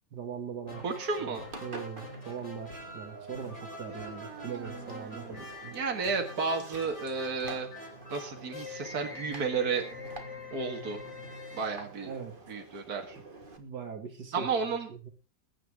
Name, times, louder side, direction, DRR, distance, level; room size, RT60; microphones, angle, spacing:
voice 1, 0.1-0.9 1.2-1.4 1.6-5.8 12.0-12.5 13.6-15.1, right 7 dB, 80° right, 6 dB, 2.9 m, -41 dB
sound 1, 0.6-12.5, left 2 dB, 45° left, 4.3 m, -45 dB
voice 2, 0.8-1.5 3.9-5.4 5.7-7.7 8.1-9.9 10.5-11.0 11.5-12.1 12.5-13.2 14.3-14.9, right 5 dB, 65° right, 3 dB, 2.3 m, -33 dB
Engine, 1.5-13.6, right 3 dB, 30° right, 2.0 m, -49 dB
21.5 x 10.0 x 3.7 m, 0.33 s
omnidirectional pair, 1.8 m